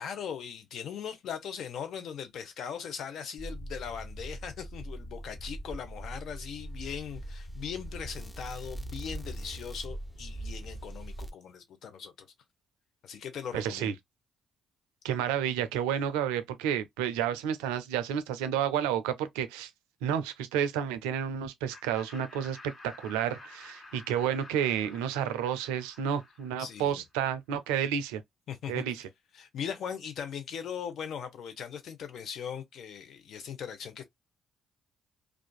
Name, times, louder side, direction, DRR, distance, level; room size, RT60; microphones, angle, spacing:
voice 1, 0.0-12.3 13.0-13.9 26.6-27.0 28.5-28.8 29.3-34.1, left 7 dB, 65° left, 0.8 m, -39 dB
sound 1, 3.4-11.3, right 1 dB, 10° left, 0.6 m, -41 dB
voice 2, 13.5-13.9 15.0-19.7 20.0-22.6 22.8-28.2 28.7-29.0, right 9 dB, 85° right, 0.4 m, -30 dB
Laughter, 21.7-27.0, left 2 dB, 45° left, 1.4 m, -51 dB
2.5 x 2.4 x 2.2 m
hypercardioid pair, 55°, 0 cm